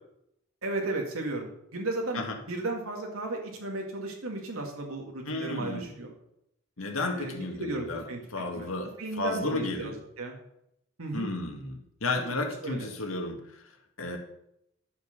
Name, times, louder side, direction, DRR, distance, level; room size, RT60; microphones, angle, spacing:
voice 1, 0.6-6.1 7.1-8.2 8.6-8.7 9.0-10.4 11.0-11.3 12.6-12.9, right 2 dB, 85° right, 0 dB, 2.2 m, -34 dB
voice 2, 5.3-5.9 6.8-8.0 8.3-9.9 11.1-14.2, left 2 dB, 70° left, 2 dB, 2.1 m, -33 dB
12.0 x 6.7 x 6.7 m, 0.78 s
head